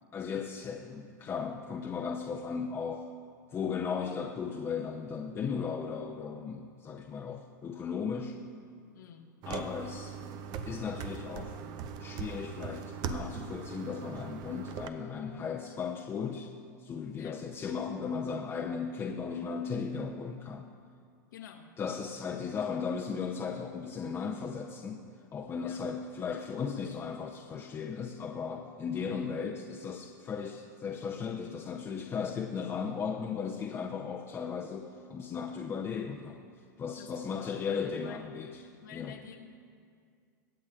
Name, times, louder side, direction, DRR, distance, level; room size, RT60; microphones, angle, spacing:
voice 1, 0.1-3.1 3.5-8.4 9.5-10.2 10.6-11.6 12.0-16.5 16.8-20.7 21.8-25.0 25.3-36.4 36.8-38.6 38.9-39.2, left 6 dB, 25° left, 0 dB, 0.7 m, -36 dB
voice 2, 8.9-9.3 17.1-17.4 21.3-21.7 25.6-25.9 36.9-38.2 38.8-39.5, left 9 dB, 75° left, 2 dB, 1.4 m, -49 dB
sound 1, 9.4-14.9, right 6 dB, 45° right, 0.8 m, -40 dB
24.5 x 8.5 x 2.5 m, 2.2 s
hypercardioid pair, 105°, 10 cm